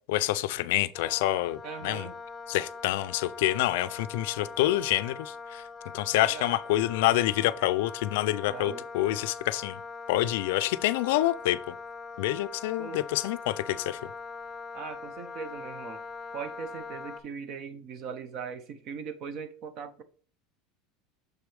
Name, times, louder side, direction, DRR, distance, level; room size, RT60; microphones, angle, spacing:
voice 1, 0.1-2.1 2.5-5.6 5.9-9.8 10.1-11.6 12.2-14.0, left 15 dB, 75° left, 0.4 m, -27 dB
Wind instrument woodwind instrument, 0.9-17.2, left 4 dB, 20° left, 0.5 m, -42 dB
voice 2, 1.6-2.2 6.1-6.6 8.5-8.9 12.8-13.0 14.7-16.0 16.3-20.0, right 6 dB, 40° right, 0.8 m, -40 dB
6.6 x 4.7 x 3.4 m
supercardioid pair, 165°, 0 cm